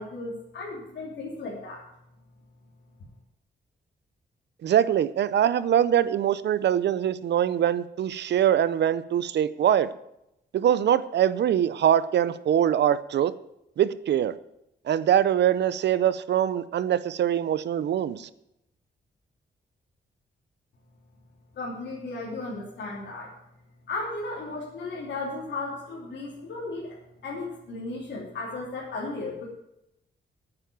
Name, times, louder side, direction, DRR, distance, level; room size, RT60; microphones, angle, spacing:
voice 1, 0.0-1.8 21.5-23.3 23.9-29.5, left 2 dB, 80° left, -5 dB, 3.0 m, -35 dB
voice 2, 4.6-9.9 10.5-13.3 13.8-14.3 14.9-18.3, right 10 dB, 70° right, 16 dB, 0.6 m, -23 dB
9.2 x 8.8 x 9.4 m, 0.84 s
wide cardioid pair, 150°, 18 cm